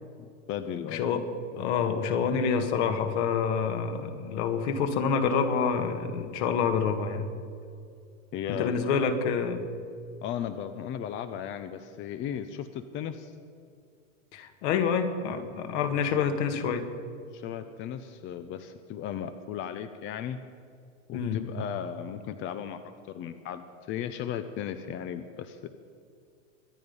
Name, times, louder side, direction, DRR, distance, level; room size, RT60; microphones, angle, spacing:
voice 1, 0.2-1.1 8.3-8.7 10.2-13.3 17.3-20.4 21.1-22.8 23.1-25.7, left 9 dB, 30° left, 10 dB, 0.7 m, -36 dB
voice 2, 0.9-1.3 1.5-7.3 8.5-9.6 14.3-16.9 21.1-21.4, left 6 dB, 60° left, 7 dB, 1.9 m, -27 dB
24.0 x 9.5 x 5.4 m, 2.3 s
hypercardioid pair, 125°, 40 cm